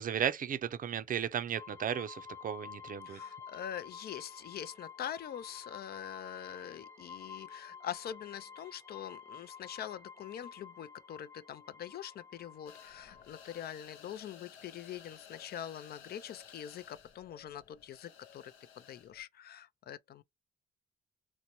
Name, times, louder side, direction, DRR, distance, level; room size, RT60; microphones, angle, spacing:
voice 1, 0.0-3.2, right 9 dB, 45° right, 0.5 m, -35 dB
sound 1, 1.5-14.0, left 6 dB, 15° left, 0.7 m, -51 dB
voice 2, 3.1-20.2, left 10 dB, 55° left, 0.4 m, -44 dB
sound 2, 12.7-19.2, left 8 dB, 85° left, 0.7 m, -56 dB
3.9 x 2.1 x 2.9 m
cardioid pair, 90°, 20 cm